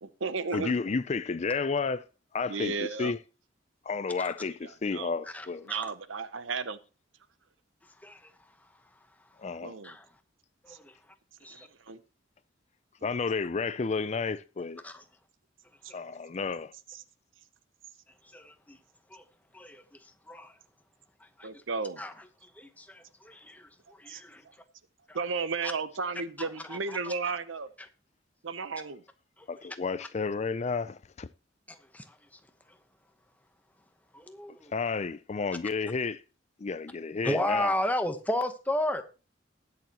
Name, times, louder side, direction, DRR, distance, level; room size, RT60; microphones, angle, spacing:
voice 1, 0.0-0.7 2.5-3.1 4.6-5.1 5.7-6.8 9.6-10.0 10.7-10.8 11.5-12.0 15.8-15.9 16.9-17.0 21.4-22.0 24.1-24.2 25.1-27.7 28.4-29.0, right 4 dB, 85° right, 0.8 m, -34 dB
voice 2, 0.5-2.0 2.3-3.2 3.9-5.7 9.4-9.7 13.0-14.8 15.9-16.7 29.5-31.3 34.7-36.2 36.6-37.7, left 4 dB, 35° left, 0.4 m, -31 dB
voice 3, 5.3-5.8 8.0-8.2 9.8-10.1 10.6-10.9 11.4-11.7 14.8-15.0 18.3-18.8 19.1-19.2 19.5-19.8 20.3-20.5 21.4-21.5 22.0-22.1 22.6-23.7 24.0-24.4 25.1-25.2 26.7-26.8 27.0-27.1 31.7-32.0 34.1-34.7 37.2-39.0, left 1 dB, 10° left, 0.9 m, -33 dB
20.0 x 7.0 x 3.0 m
head